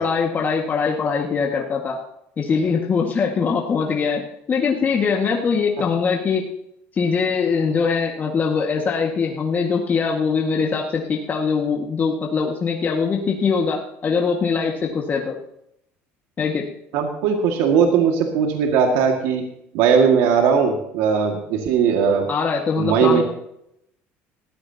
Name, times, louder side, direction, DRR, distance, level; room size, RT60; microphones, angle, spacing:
voice 1, 0.0-2.0 2.4-6.5 7.0-15.4 16.4-16.7 22.3-23.2, left 5 dB, 35° left, 0 dB, 1.8 m, -22 dB
voice 2, 16.9-19.4 19.7-22.3 22.8-23.2, right 6 dB, 80° right, 2 dB, 2.1 m, -18 dB
19.0 x 14.5 x 2.9 m, 0.78 s
supercardioid pair, 105°, 5 cm